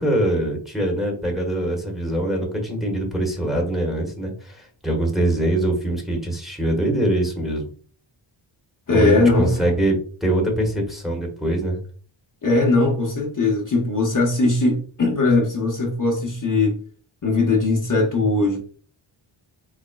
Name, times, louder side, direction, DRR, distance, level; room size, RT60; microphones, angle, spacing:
voice 1, 0.0-7.6 8.9-11.8, right 1 dB, ahead, 1.2 m, -23 dB
voice 2, 8.9-9.6 12.4-16.8 17.2-18.6, left 3 dB, 40° left, 0.9 m, -19 dB
4.0 x 3.5 x 2.2 m
wide cardioid pair, 110°, 48 cm